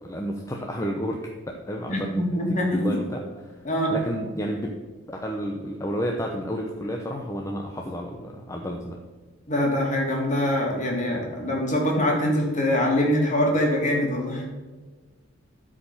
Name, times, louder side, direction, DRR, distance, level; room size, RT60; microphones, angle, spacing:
voice 1, 0.0-1.3 1.7-2.2 2.5-3.5 3.9-4.7 5.1-9.0, equal, 15° left, 1 dB, 0.8 m, -31 dB
voice 2, 1.9-3.0 3.6-3.9 9.5-14.4, left 1 dB, 35° left, -1 dB, 2.8 m, -24 dB
12.5 x 5.1 x 5.6 m, 1.3 s
head